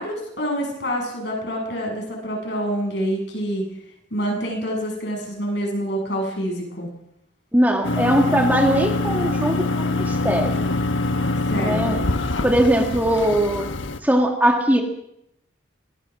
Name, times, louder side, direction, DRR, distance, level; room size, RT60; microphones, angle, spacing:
voice 1, 0.0-3.7 4.1-6.9 11.5-12.1, equal, 60° left, 1 dB, 7.4 m, -27 dB
voice 2, 7.5-10.6 11.6-12.0 12.4-13.7 14.0-14.8, right 1 dB, 10° right, 2 dB, 1.8 m, -20 dB
sound 1, 7.8-14.0, left 2 dB, 75° left, 1.4 m, -24 dB
23.0 x 18.5 x 6.2 m, 0.78 s
head